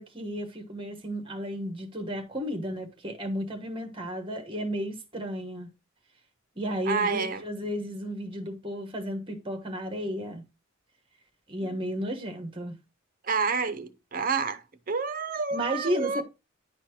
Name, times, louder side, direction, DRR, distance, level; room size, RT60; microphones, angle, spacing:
voice 1, 0.0-5.7 6.5-10.4 11.5-12.8 15.5-16.2, equal, 25° right, 1.3 m, -33 dB
voice 2, 6.9-7.4 13.3-14.6 14.9-16.2, right 5 dB, 40° right, 0.6 m, -28 dB
10.5 x 4.4 x 3.0 m
head